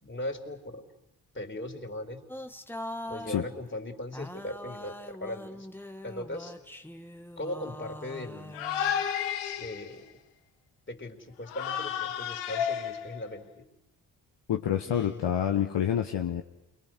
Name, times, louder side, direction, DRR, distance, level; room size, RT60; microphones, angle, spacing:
voice 1, 0.0-0.8 1.3-2.3 3.1-5.7 6.0-6.5 7.4-8.6 9.6-10.1 10.9-13.7 14.8-15.3, left 1 dB, 25° left, 2 dB, 4.4 m, -39 dB
sound 1, 2.3-3.5 4.1-9.0, left 1 dB, 5° left, 1.7 m, -42 dB
sound 2, 8.5-10.0 11.5-13.3, left 9 dB, 85° left, 1.5 m, -32 dB
voice 2, 14.5-16.4, left 9 dB, 55° left, 3 dB, 1.5 m, -27 dB
29.0 x 22.5 x 6.2 m, 0.86 s
hypercardioid pair, 50°, 50 cm